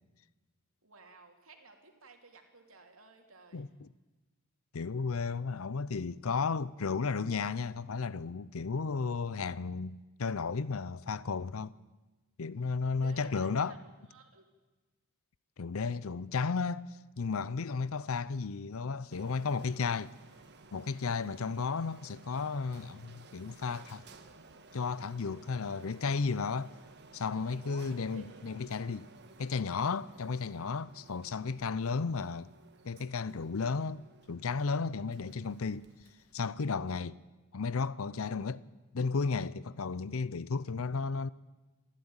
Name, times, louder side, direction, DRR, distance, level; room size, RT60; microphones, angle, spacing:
voice 1, 0.8-3.7 12.8-13.8 14.1-14.5 27.6-28.4, right 3 dB, 70° right, 3.0 m, -55 dB
voice 2, 3.5-3.9 4.7-11.7 12.4-13.8 15.6-16.9 17.2-20.1 20.7-24.0 24.7-26.7 27.1-29.1 29.4-32.5 32.8-35.9 36.3-37.2 37.5-38.6 38.9-41.3, left 4 dB, 70° left, 0.6 m, -34 dB
Printer, 19.1-36.8, right 3 dB, 50° right, 1.6 m, -57 dB
29.0 x 12.0 x 8.9 m
head